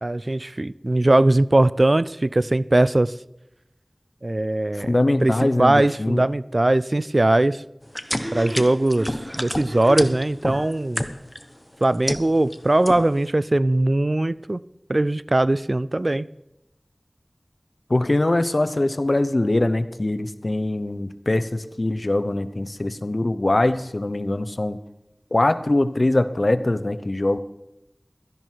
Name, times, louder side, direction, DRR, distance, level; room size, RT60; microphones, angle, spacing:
voice 1, 0.0-3.1 4.2-7.6 8.3-11.0 11.8-14.6 14.9-16.3, right 2 dB, 50° right, 0.4 m, -20 dB
voice 2, 4.8-6.2 17.9-24.8 25.3-27.4, left 2 dB, 60° left, 0.8 m, -22 dB
sound 1, 5.3-5.4 5.7-5.9 8.0-10.2, equal, 25° right, 5.4 m, -35 dB
sound 2, 7.9-11.4 11.8-12.6 12.8-13.3, equal, 15° left, 1.1 m, -29 dB
16.5 x 13.0 x 4.6 m
wide cardioid pair, 45°, 0 cm